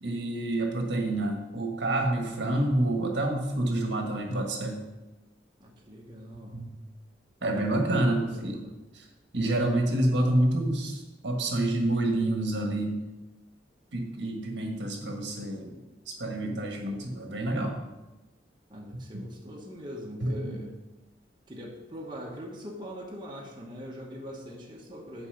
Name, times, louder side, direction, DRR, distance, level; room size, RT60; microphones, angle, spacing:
voice 1, 0.0-4.8 6.5-6.7 7.4-8.6 8.9-9.0 9.3-13.0 13.9-15.8 16.1-17.8 19.1-19.2 20.2-20.6, right 1 dB, 70° right, 2 dB, 1.4 m, -28 dB
voice 2, 5.6-6.6 7.4-8.7 18.7-20.7 21.5-25.3, equal, 25° right, -2 dB, 1.2 m, -42 dB
6.9 x 4.9 x 7.1 m, 1.0 s
head